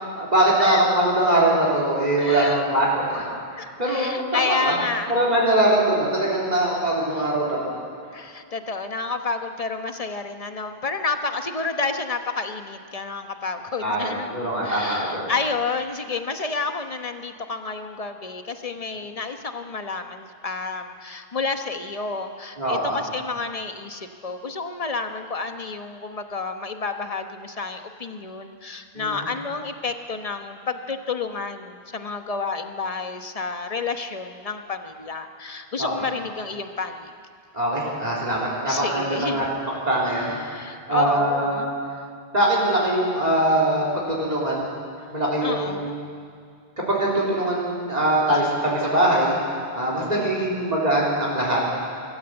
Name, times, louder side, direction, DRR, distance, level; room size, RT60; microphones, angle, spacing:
voice 1, 0.2-3.2 3.5-4.7 5.1-7.6 13.8-15.2 22.6-23.0 29.0-29.3 35.8-36.0 37.5-39.4 39.9-40.4 40.9-41.8 42.3-44.7 45.1-46.1 46.9-51.6, right 1 dB, 40° right, -4 dB, 3.6 m, -22 dB
voice 2, 2.2-2.6 3.6-5.1 5.7-5.8 8.1-14.3 14.6-37.1 38.7-39.6 40.2-41.8 45.4-45.9 50.1-50.7, left 4 dB, 35° left, 6 dB, 1.2 m, -30 dB
24.5 x 13.5 x 8.0 m, 2.2 s
omnidirectional pair, 1.1 m